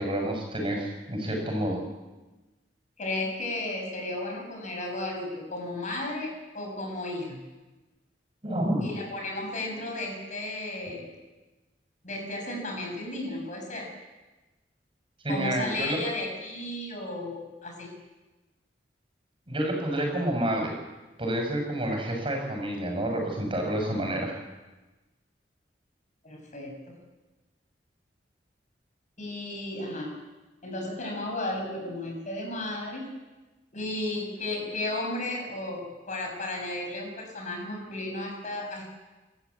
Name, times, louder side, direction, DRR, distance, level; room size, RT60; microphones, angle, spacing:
voice 1, 0.0-1.8 8.4-8.9 15.2-16.0 19.5-20.7 21.2-24.4, right 1 dB, 30° right, 1 dB, 7.0 m, -29 dB
voice 2, 3.0-7.4 8.8-11.1 12.0-13.9 15.3-17.9 26.2-26.8 29.2-30.1 30.6-33.0 33.7-38.9, left 2 dB, 45° left, 2 dB, 6.8 m, -34 dB
28.5 x 14.0 x 8.6 m, 1.1 s
head